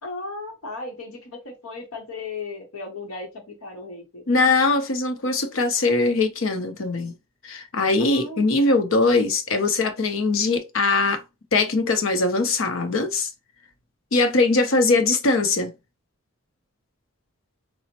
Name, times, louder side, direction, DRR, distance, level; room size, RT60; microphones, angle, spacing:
voice 1, 0.0-4.2 8.0-8.4, left 3 dB, 90° left, 1.0 m, -36 dB
voice 2, 4.3-7.1 7.4-11.2 11.5-13.3 14.1-15.7, left 3 dB, 70° left, 0.6 m, -21 dB
4.1 x 2.0 x 2.8 m
head